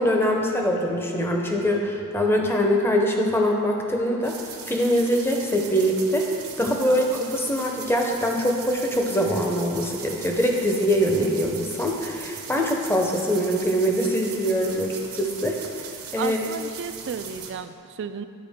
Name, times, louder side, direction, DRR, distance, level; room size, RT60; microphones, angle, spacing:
voice 1, 0.0-4.4 4.7-6.3 6.6-15.6 16.1-16.4, equal, 10° left, 1 dB, 0.7 m, -23 dB
sound 1, 4.2-17.5, right 6 dB, 75° right, 0.9 m, -39 dB
voice 2, 16.2-18.3, right 6 dB, 55° right, 10 dB, 0.3 m, -33 dB
10.5 x 4.7 x 3.5 m, 2.5 s
head